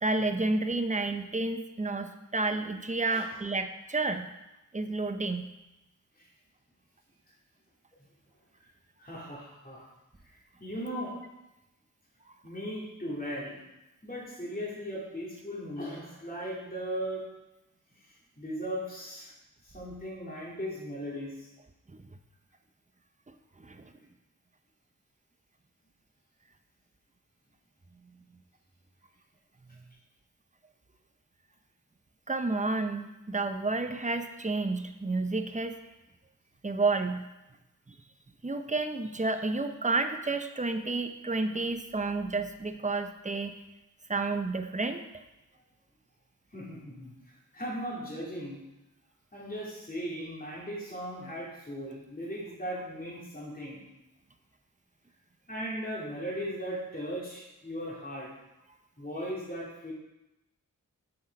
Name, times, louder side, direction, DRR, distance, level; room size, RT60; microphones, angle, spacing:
voice 1, 0.0-4.3 4.7-5.5 23.6-23.8 32.3-35.8 36.6-37.3 38.4-43.5 44.1-45.0, right 3 dB, 20° right, 7 dB, 0.7 m, -30 dB
voice 2, 9.0-9.9 10.2-11.2 12.4-13.6 14.0-17.2 18.4-19.3 19.6-21.5 46.5-48.6 49.3-53.9 55.5-58.3 59.0-59.9, equal, 25° left, -6 dB, 2.9 m, -38 dB
6.7 x 6.3 x 5.3 m, 0.96 s
wide cardioid pair, 55°, 32 cm